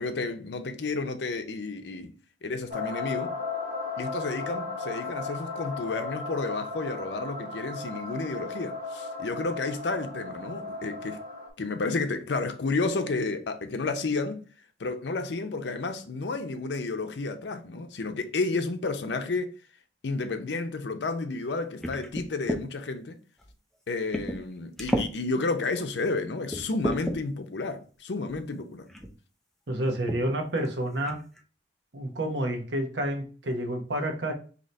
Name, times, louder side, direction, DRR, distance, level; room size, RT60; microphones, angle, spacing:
voice 1, 0.0-2.1 2.4-3.3 4.0-11.2 11.6-14.4 14.8-19.5 20.0-23.2 23.9-28.9, left 3 dB, 75° left, 0.6 m, -31 dB
sound 1, 2.7-11.5, left 3 dB, 40° right, 1.8 m, -36 dB
sound 2, 21.8-22.6 23.4-23.5 24.1-24.5 24.8-25.1 25.8-25.9 26.5-27.2 28.3-28.4 28.9-29.1 30.1-30.2 30.6-30.7 31.0-31.4, equal, ahead, 0.5 m, -31 dB
voice 2, 29.7-31.2 31.9-34.3, right 1 dB, 85° right, 0.9 m, -29 dB
4.0 x 2.8 x 3.2 m
head